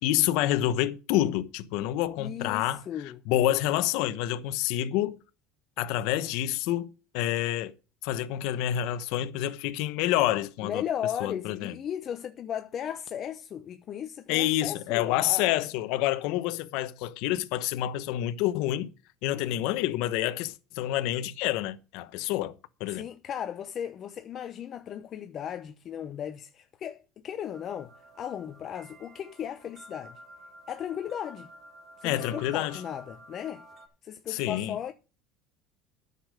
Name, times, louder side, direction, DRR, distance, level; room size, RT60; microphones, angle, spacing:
voice 1, 0.0-2.8 3.3-5.2 5.8-6.9 7.1-7.7 8.0-10.8 11.2-11.7 14.3-18.9 19.2-22.5 22.8-23.0 32.0-32.8 34.3-34.8, left 13 dB, 70° left, 1.0 m, -28 dB
voice 2, 2.2-3.2 10.6-15.5 19.3-19.6 22.9-30.2 30.7-31.5 32.0-33.7 34.0-34.9, left 9 dB, 40° left, 0.9 m, -36 dB
sound 1, 27.5-33.9, right 2 dB, 30° right, 2.4 m, -51 dB
10.0 x 6.9 x 6.4 m
supercardioid pair, 115°, 0 cm